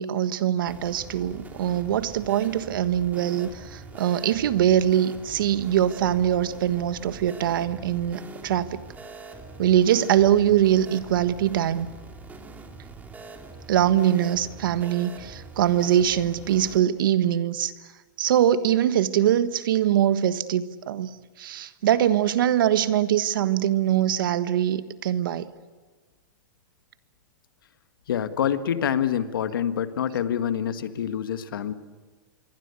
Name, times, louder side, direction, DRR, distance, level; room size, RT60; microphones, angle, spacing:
voice 1, 0.0-8.8 9.6-11.9 13.7-17.7 18.2-25.5, right 11 dB, 75° right, 12 dB, 1.4 m, -23 dB
sound 1, 0.7-16.8, right 3 dB, 15° right, 3.1 m, -43 dB
voice 2, 28.1-31.7, left 9 dB, 80° left, 9 dB, 1.7 m, -26 dB
26.5 x 23.0 x 8.4 m, 1.4 s
hypercardioid pair, 135°, 11 cm